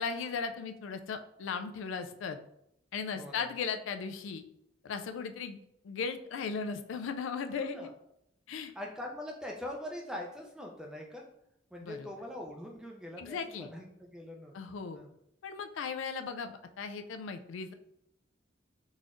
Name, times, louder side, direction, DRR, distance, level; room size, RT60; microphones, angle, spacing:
voice 1, 0.0-2.4 2.9-4.4 4.8-5.6 5.8-7.9 8.5-8.7 11.8-12.1 13.2-13.7 14.5-15.0 15.4-17.7, left 5 dB, 85° left, 8 dB, 0.3 m, -37 dB
voice 2, 3.1-3.5 7.6-7.9 8.8-11.3 11.7-14.5 14.9-15.1, left 1 dB, 5° right, 0 dB, 0.4 m, -43 dB
3.9 x 3.0 x 2.5 m, 0.78 s
head